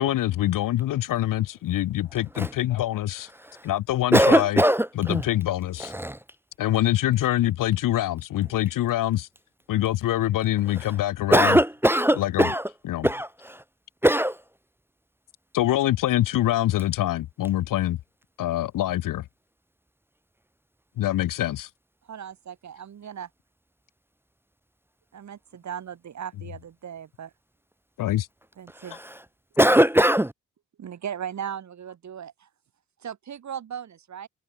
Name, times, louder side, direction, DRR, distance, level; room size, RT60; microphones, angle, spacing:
voice 1, 0.0-3.3 3.6-4.6 5.0-5.9 6.6-9.3 9.7-11.6 12.1-12.5 12.9-13.1 15.5-18.0 18.4-19.2 21.0-21.7 28.0-28.3, left 14 dB, 65° left, 1.1 m, -24 dB
voice 2, 4.1-5.2 5.8-6.2 11.3-12.6 13.0-13.6 14.0-14.4 28.9-29.1 29.6-30.3, right 1 dB, 5° right, 0.6 m, -20 dB
voice 3, 22.1-23.3 25.1-27.3 28.6-29.0 30.8-32.5 33.0-34.3, right 8 dB, 55° right, 2.0 m, -37 dB
hypercardioid pair, 50°, 34 cm